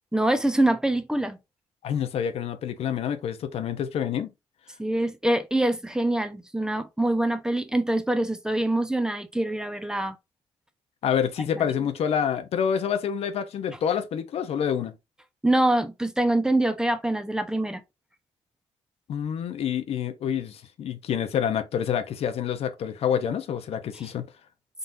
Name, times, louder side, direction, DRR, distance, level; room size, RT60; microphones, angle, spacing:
voice 1, 0.1-1.4 4.8-10.2 11.6-11.7 15.4-17.8, right 1 dB, 5° right, 0.7 m, -24 dB
voice 2, 1.8-4.3 11.0-14.9 19.1-24.2, left 8 dB, 70° left, 0.7 m, -27 dB
4.0 x 3.9 x 2.6 m
cardioid pair, 80°, 11 cm